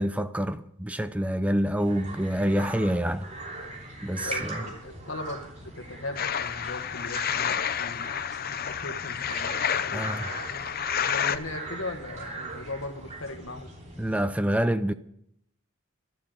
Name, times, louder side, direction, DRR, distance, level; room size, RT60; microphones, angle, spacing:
voice 1, 0.0-3.3 4.0-4.7 9.9-10.3 14.0-14.9, equal, 5° right, 0.5 m, -27 dB
sound 1, 1.8-14.2, right 2 dB, 35° right, 3.2 m, -40 dB
voice 2, 4.2-8.1 8.5-10.4 10.9-13.7, left 2 dB, 75° left, 1.6 m, -39 dB
sound 2, 6.2-11.4, left 8 dB, 45° left, 0.6 m, -30 dB
12.0 x 11.5 x 6.8 m
head